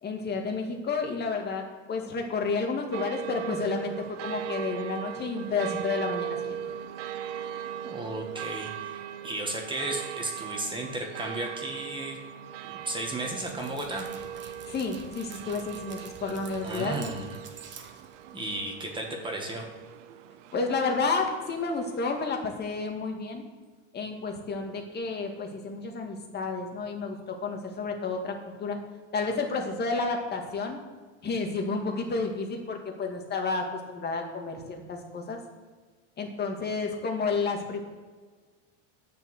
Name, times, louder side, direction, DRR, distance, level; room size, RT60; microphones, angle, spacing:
voice 1, 0.0-6.6 14.7-17.1 20.5-23.4 23.9-28.8 29.1-30.8 31.2-35.4 36.2-37.8, left 4 dB, 25° left, 3 dB, 2.1 m, -31 dB
sound 1, 2.9-22.3, right 9 dB, 75° right, 0.9 m, -39 dB
voice 2, 7.8-12.2 12.9-14.1 16.6-17.4 18.3-19.7, right 2 dB, 15° right, 1 dB, 1.9 m, -34 dB
Dog, 12.9-18.6, right 6 dB, 30° right, 1.5 m, -48 dB
9.3 x 6.9 x 8.0 m, 1.4 s
supercardioid pair, 130°, 37 cm